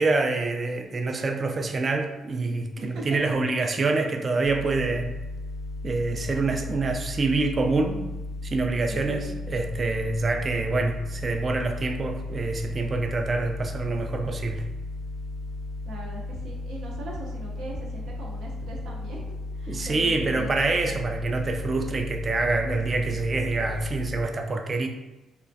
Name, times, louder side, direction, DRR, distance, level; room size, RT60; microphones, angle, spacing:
voice 1, 0.0-5.1 5.8-8.0 8.4-14.7 19.7-24.9, right 3 dB, 40° right, 4 dB, 0.3 m, -26 dB
sound 1, 4.4-24.3, left 2 dB, 45° left, 0.3 m, -35 dB
voice 2, 8.9-9.4 15.9-19.2 19.6-20.6, right 1 dB, 80° right, -3 dB, 0.6 m, -39 dB
2.3 x 2.1 x 2.5 m, 1.0 s
cardioid pair, 90°, 0 cm